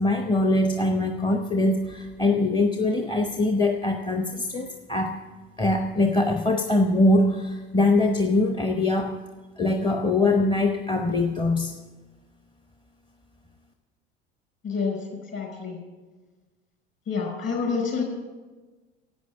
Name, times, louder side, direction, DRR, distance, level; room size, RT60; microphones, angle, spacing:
voice 1, 0.0-5.2 5.6-9.2 9.6-11.7, left 2 dB, 15° left, 5 dB, 0.9 m, -23 dB
voice 2, 14.6-15.0 15.3-15.8 17.1-18.0, left 5 dB, 35° left, 2 dB, 5.0 m, -27 dB
11.5 x 8.3 x 9.3 m, 1.3 s
figure-of-eight pair, 70°, 33 cm